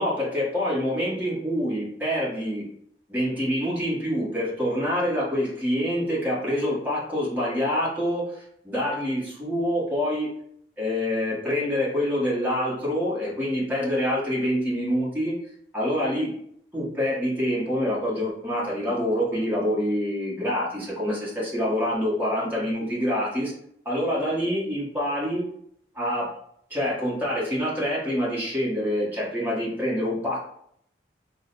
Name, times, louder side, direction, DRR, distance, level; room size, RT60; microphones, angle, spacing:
voice 1, 0.0-2.6 3.1-10.3 10.8-15.4 15.7-16.3 16.7-23.5 23.8-25.4 25.9-26.3 26.7-30.4, equal, 10° right, -7 dB, 1.3 m, -26 dB
3.7 x 2.2 x 4.0 m, 0.69 s
head